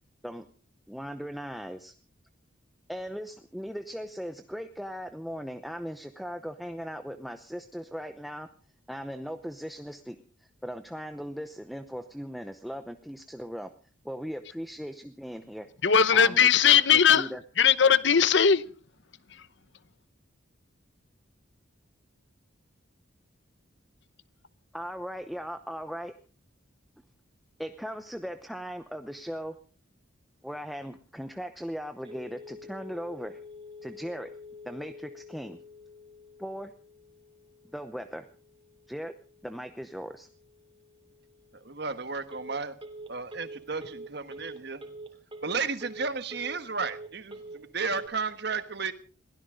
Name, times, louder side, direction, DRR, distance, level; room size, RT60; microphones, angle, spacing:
voice 1, 0.9-1.9 2.9-8.5 8.9-13.7 14.0-15.7 16.1-16.6 16.9-17.4 24.7-26.1 27.6-29.6 30.4-33.4 33.8-34.3 34.6-35.6 36.4-36.7 37.7-38.3 38.9-39.1 39.4-40.3, equal, ahead, 0.7 m, -38 dB
voice 2, 15.8-17.3 17.6-18.6, left 7 dB, 60° left, 0.8 m, -19 dB
Telephone, 32.0-48.1, equal, 25° right, 3.1 m, -47 dB
voice 3, 41.6-42.7 43.1-44.8 45.4-48.9, right 4 dB, 55° right, 1.4 m, -33 dB
22.0 x 16.5 x 3.8 m
head